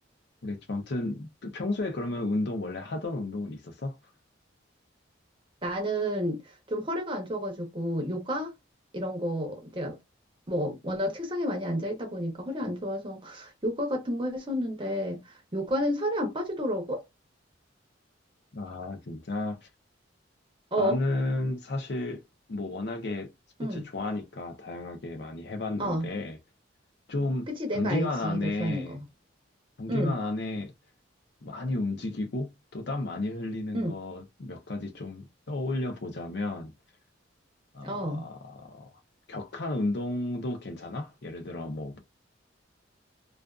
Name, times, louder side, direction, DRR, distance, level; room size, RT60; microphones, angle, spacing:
voice 1, 0.4-4.0 18.5-19.7 20.8-22.2 22.5-23.3 23.6-26.4 27.1-27.5 27.7-29.0 29.8-30.7 31.4-36.7 37.7-38.9 39.3-42.0, left 2 dB, 60° left, 0.6 m, -32 dB
voice 2, 5.6-6.4 6.7-8.5 8.9-10.0 10.5-17.0 20.7-21.0 23.6-23.8 25.8-26.1 27.5-29.0 29.9-30.1 33.7-33.9 37.8-38.2, equal, 25° right, 0.7 m, -30 dB
2.4 x 2.4 x 2.3 m
head